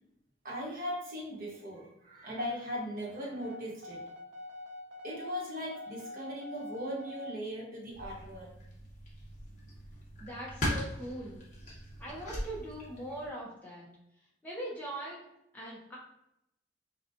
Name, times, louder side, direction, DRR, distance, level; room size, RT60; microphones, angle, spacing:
voice 1, 0.4-4.1 5.0-8.5, equal, 45° right, -3 dB, 1.2 m, -39 dB
sound 1, 3.4-7.4, left 2 dB, 85° right, 0.6 m, -45 dB
sound 2, 7.9-13.3, equal, 40° left, 1.2 m, -40 dB
voice 2, 10.2-11.4 12.0-13.9 14.4-15.3 15.5-16.0, right 1 dB, 10° left, -5 dB, 0.8 m, -41 dB
5.3 x 2.4 x 2.8 m, 0.82 s
head